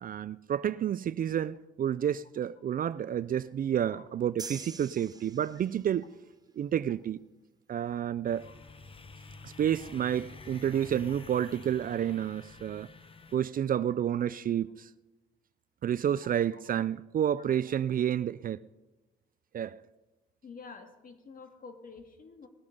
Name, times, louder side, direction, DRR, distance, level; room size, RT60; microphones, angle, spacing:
voice 1, 0.0-6.1 6.6-7.2 7.7-8.5 9.4-12.9 13.3-14.9 15.8-18.6 19.5-19.8, right 9 dB, 45° right, 0.4 m, -30 dB
sound 1, 4.4-6.0, right 4 dB, 20° right, 0.8 m, -44 dB
sound 2, 8.2-13.4, left 4 dB, 25° left, 0.9 m, -49 dB
voice 2, 20.4-22.5, left 4 dB, 45° left, 2.1 m, -49 dB
19.5 x 8.5 x 5.4 m
cardioid pair, 90°, 20 cm